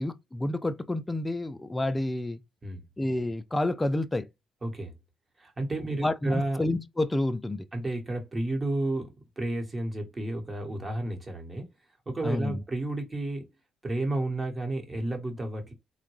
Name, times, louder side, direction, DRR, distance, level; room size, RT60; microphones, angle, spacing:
voice 1, 0.0-2.4 3.0-4.3 6.0-7.7 12.2-12.6, left 1 dB, 15° left, 0.3 m, -29 dB
voice 2, 4.6-4.9 5.4-6.6 7.7-11.7 12.1-13.5 13.8-15.7, right 2 dB, 25° right, 1.1 m, -32 dB
3.8 x 2.1 x 3.0 m
cardioid pair, 100°, 0 cm